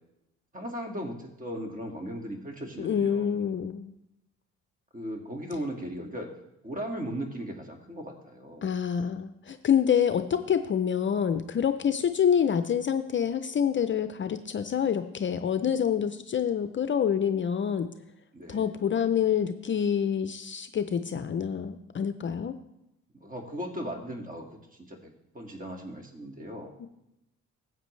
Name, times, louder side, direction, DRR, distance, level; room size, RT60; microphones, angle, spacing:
voice 1, 0.5-3.3 4.9-6.3 6.6-8.7 11.8-11.9 18.3-18.7 23.1-24.4 24.8-26.7, equal, 25° right, 2 dB, 2.0 m, -37 dB
voice 2, 2.8-3.9 5.5-5.6 8.6-17.9 18.5-22.5 26.8-26.9, left 8 dB, 40° left, 10 dB, 0.5 m, -27 dB
14.5 x 8.1 x 3.2 m, 0.88 s
cardioid pair, 90°, 30 cm